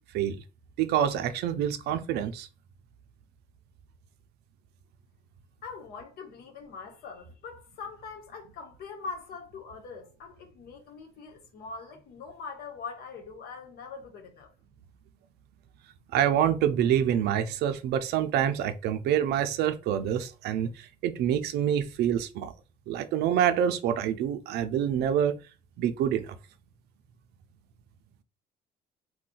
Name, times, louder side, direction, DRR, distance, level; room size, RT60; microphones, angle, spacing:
voice 1, 0.8-2.5 16.1-22.5 22.9-25.4 25.8-26.3, right 9 dB, 75° right, 0.4 m, -26 dB
voice 2, 5.6-14.5, left 4 dB, 65° left, 1.0 m, -42 dB
2.4 x 2.2 x 3.7 m
cardioid pair, 110°, 17 cm